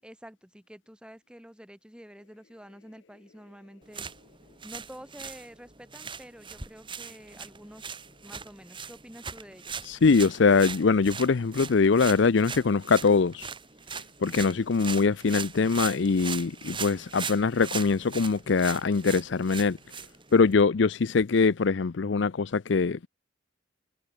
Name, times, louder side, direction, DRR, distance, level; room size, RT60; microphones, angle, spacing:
voice 1, 0.0-4.1 4.6-7.9 8.2-9.8, equal, 5° right, 7.4 m, -48 dB
sound 1, 3.8-20.6, right 6 dB, 25° right, 2.7 m, -40 dB
voice 2, 9.9-13.5 14.2-19.8 20.3-23.1, left 4 dB, 65° left, 0.5 m, -23 dB
head